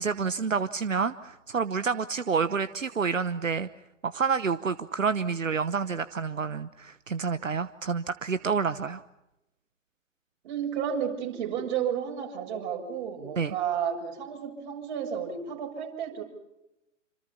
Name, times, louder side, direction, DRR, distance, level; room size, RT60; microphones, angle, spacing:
voice 1, 0.0-3.7 4.0-9.0 13.4-13.5, right 5 dB, 80° right, 12 dB, 1.1 m, -28 dB
voice 2, 10.4-16.2, right 8 dB, 35° right, 1 dB, 7.3 m, -32 dB
28.5 x 26.5 x 5.8 m, 0.93 s
figure-of-eight pair, 125°, 38 cm